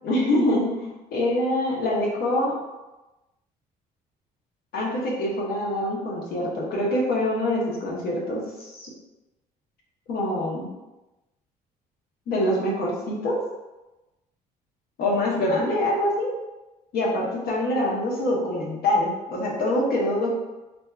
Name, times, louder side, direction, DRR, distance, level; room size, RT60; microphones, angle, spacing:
voice 1, 0.0-2.6 4.7-8.9 10.1-10.7 12.3-13.4 15.0-16.3 16.9-20.3, left 1 dB, 65° left, -2 dB, 0.9 m, -25 dB
2.7 x 2.3 x 3.3 m, 1.0 s
cardioid pair, 110°, 17 cm